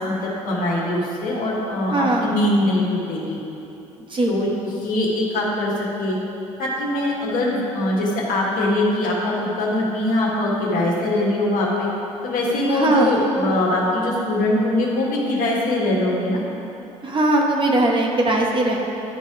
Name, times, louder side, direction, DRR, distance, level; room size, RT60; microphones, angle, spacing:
voice 1, 0.0-3.4 4.3-6.2 6.6-11.9 12.2-16.4, left 1 dB, 55° left, -3 dB, 1.6 m, -22 dB
voice 2, 1.9-2.4 4.1-4.3 12.7-13.1 17.0-18.8, right 2 dB, 30° right, 0 dB, 1.1 m, -19 dB
11.0 x 4.1 x 4.8 m, 2.9 s
figure-of-eight pair, 55°, 17 cm